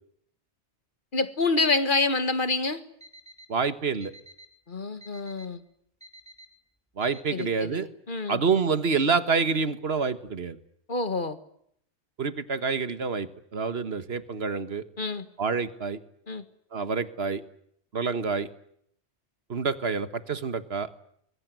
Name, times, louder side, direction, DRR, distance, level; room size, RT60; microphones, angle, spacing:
voice 1, 1.1-2.8 4.7-5.6 7.3-8.4 10.9-11.4 15.0-15.3 16.3-16.4, left 3 dB, 45° left, 11 dB, 1.8 m, -27 dB
Alarm, 3.0-3.5 4.0-4.5 5.0-5.5 6.0-6.5 7.0-7.5, right 1 dB, 5° right, 3.1 m, -48 dB
voice 2, 3.5-4.1 7.0-7.9 8.3-10.6 12.2-14.8 15.4-16.0 16.7-17.4 17.9-18.5 19.5-20.9, right 5 dB, 60° right, 12 dB, 1.7 m, -27 dB
24.5 x 22.0 x 9.4 m, 0.70 s
omnidirectional pair, 1.2 m